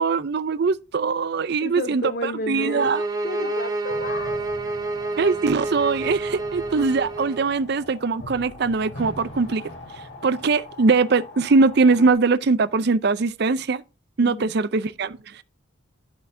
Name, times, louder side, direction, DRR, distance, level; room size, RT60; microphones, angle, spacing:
voice 1, 0.0-3.0 5.2-9.6 10.2-13.8 14.2-15.4, right 4 dB, 55° right, 0.5 m, -21 dB
voice 2, 1.6-2.9 3.2-4.8 14.2-14.5, left 1 dB, 50° left, 0.7 m, -32 dB
sound 1, 2.6-7.5, right 3 dB, 20° right, 0.9 m, -29 dB
sound 2, 3.9-12.1, left 1 dB, 75° left, 3.8 m, -41 dB
11.5 x 5.8 x 2.6 m
head